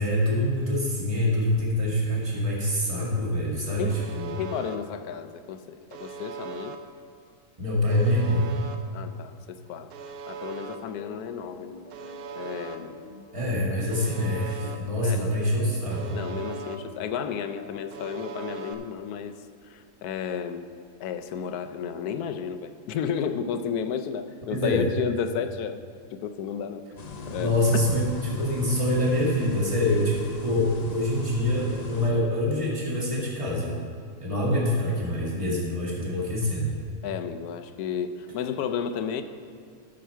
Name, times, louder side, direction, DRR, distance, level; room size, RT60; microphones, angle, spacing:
voice 1, 0.0-4.3 7.6-8.4 13.3-16.2 24.5-24.9 27.4-33.7 34.2-36.7, left 1 dB, 20° right, -5 dB, 2.0 m, -25 dB
voice 2, 3.8-4.1 4.4-6.8 8.9-9.9 10.3-11.8 12.4-13.0 15.0-15.3 16.1-20.7 21.0-25.8 26.1-26.8 27.3-27.5 37.0-39.2, left 7 dB, 80° left, 9 dB, 1.1 m, -32 dB
Alarm, 3.9-4.8 5.9-6.8 7.9-8.8 9.9-10.8 11.9-12.8 13.9-14.8 15.9-16.8 17.9-18.7, right 5 dB, 75° right, 1.2 m, -39 dB
sound 1, 10.7-18.4, left 3 dB, 35° left, 1.0 m, -45 dB
sound 2, 27.0-32.1, left 2 dB, 60° left, 0.4 m, -39 dB
12.5 x 6.5 x 4.5 m, 2.2 s
omnidirectional pair, 1.6 m